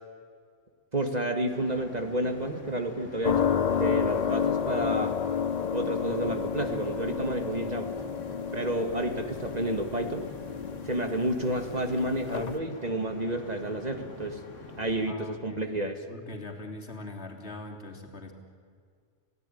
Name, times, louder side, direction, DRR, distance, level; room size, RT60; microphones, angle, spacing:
voice 1, 0.9-5.1 5.7-7.9 8.5-10.3 10.9-14.4 14.8-16.0, right 1 dB, 35° right, 6 dB, 1.8 m, -30 dB
sound 1, 1.5-15.1, left 2 dB, 80° left, 2.5 m, -45 dB
sound 2, 3.2-12.6, left 7 dB, 40° left, 0.7 m, -30 dB
voice 2, 15.1-15.7 16.1-18.3, left 2 dB, 60° left, 1 dB, 3.4 m, -41 dB
28.5 x 17.0 x 9.9 m, 2.1 s
omnidirectional pair, 1.3 m